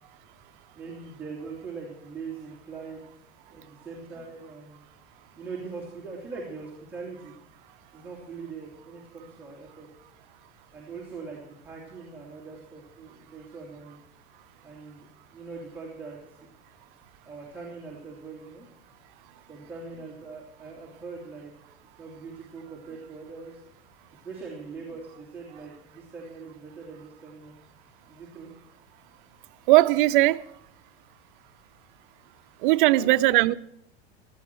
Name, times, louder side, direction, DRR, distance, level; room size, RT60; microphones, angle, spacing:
voice 1, 0.7-3.0 3.5-4.8 5.4-7.4 7.9-9.9 10.7-14.0 14.6-16.2 17.2-18.7 19.5-21.5 22.0-23.6 24.2-27.5 28.1-28.5 32.8-33.2, right 4 dB, 5° right, 2.7 m, -41 dB
voice 2, 29.7-30.4 32.6-33.5, right 18 dB, 55° right, 0.5 m, -19 dB
16.5 x 14.0 x 4.5 m
supercardioid pair, 155°, 31 cm